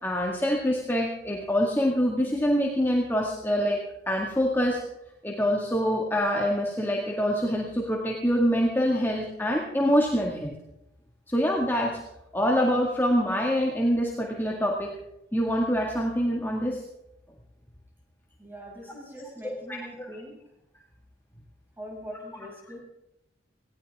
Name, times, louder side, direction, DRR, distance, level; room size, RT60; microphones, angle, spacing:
voice 1, 0.0-3.8 4.1-4.8 5.2-10.6 11.3-12.0 12.3-14.9 15.3-16.8 19.4-20.2 22.4-22.5, equal, 10° left, -1 dB, 2.0 m, -25 dB
voice 2, 18.4-20.4 21.8-22.8, equal, 10° right, -1 dB, 6.4 m, -42 dB
19.0 x 17.0 x 3.6 m, 0.85 s
head